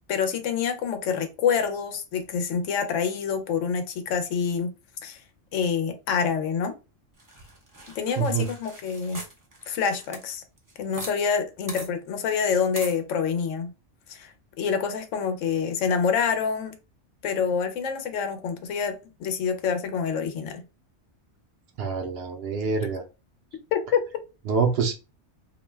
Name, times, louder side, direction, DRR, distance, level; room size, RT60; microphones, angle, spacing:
voice 1, 0.1-4.7 5.0-5.2 5.5-6.7 8.0-9.2 9.7-10.4 10.8-13.7 14.1-16.7 17.2-20.6 23.7-24.0, left 6 dB, 85° left, 1.0 m, -27 dB
sound 1, 7.2-11.2 11.4-11.5 11.7-11.9 12.8-13.0, right 1 dB, 25° right, 0.5 m, -41 dB
voice 2, 8.2-8.5 21.8-23.0 24.5-24.9, right 5 dB, 65° right, 0.7 m, -25 dB
2.5 x 2.2 x 3.2 m
omnidirectional pair, 1.2 m